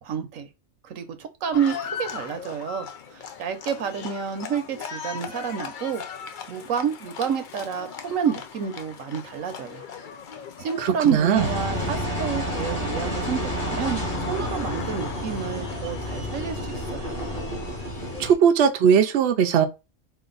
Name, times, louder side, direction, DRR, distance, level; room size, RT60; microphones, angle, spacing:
voice 1, 0.0-0.5 0.8-6.0 6.5-9.8 10.6-14.0 14.3-17.1, right 7 dB, 80° right, 1.2 m, -29 dB
Livestock farm animals working animals, 1.5-18.3, left 7 dB, 55° left, 0.6 m, -39 dB
voice 2, 10.8-11.5 18.2-19.7, right 7 dB, 65° right, 0.8 m, -19 dB
Engine, 11.3-18.3, equal, 30° left, 1.9 m, -30 dB
5.0 x 2.6 x 3.9 m
omnidirectional pair, 1.4 m